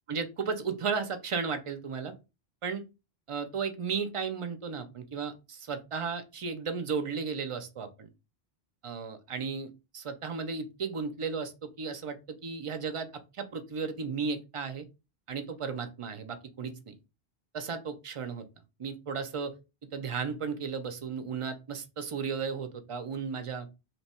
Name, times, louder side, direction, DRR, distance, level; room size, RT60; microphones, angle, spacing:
voice 1, 0.1-2.1 2.6-2.8 3.3-8.1 8.8-13.1 13.3-14.8 15.3-17.0 17.5-18.4 18.8-19.5 19.9-23.7, right 5 dB, 50° right, 9 dB, 0.4 m, -34 dB
2.9 x 2.2 x 4.2 m, 0.27 s
omnidirectional pair, 1.1 m